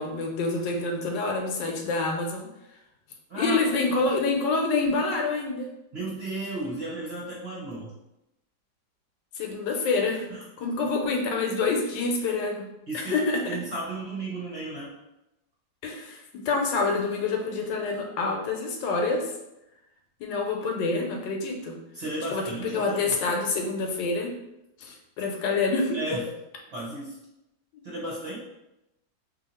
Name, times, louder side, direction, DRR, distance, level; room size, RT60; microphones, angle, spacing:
voice 1, 0.0-2.5 3.4-5.7 9.3-10.2 10.6-12.7 12.9-13.4 15.8-19.3 20.2-21.8 22.3-24.3 24.8-26.2, left 3 dB, 80° left, 2 dB, 1.3 m, -27 dB
voice 2, 3.3-3.6 5.9-7.9 10.3-10.4 10.8-10.9 12.9-13.2 13.5-14.9 21.9-23.1 25.9-26.2 26.7-27.2 27.8-28.4, right 2 dB, 45° right, -6 dB, 0.9 m, -34 dB
2.8 x 2.7 x 4.1 m, 0.89 s
omnidirectional pair, 2.0 m